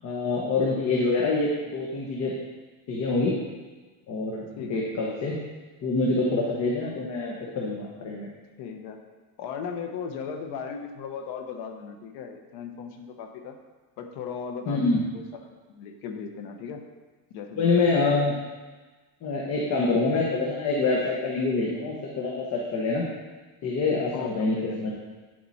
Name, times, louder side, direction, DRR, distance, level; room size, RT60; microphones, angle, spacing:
voice 1, 0.0-2.4 2.9-3.3 4.1-5.4 5.8-8.3 14.7-15.0 17.6-18.3 19.2-23.0 23.6-24.9, left 3 dB, 35° left, -3 dB, 1.4 m, -26 dB
voice 2, 4.6-5.1 8.6-9.0 9.4-13.5 14.0-16.8 17.3-18.0 24.1-24.9, left 6 dB, 65° left, 5 dB, 1.3 m, -37 dB
9.9 x 7.6 x 4.3 m, 1.3 s
cardioid pair, 160°, 43 cm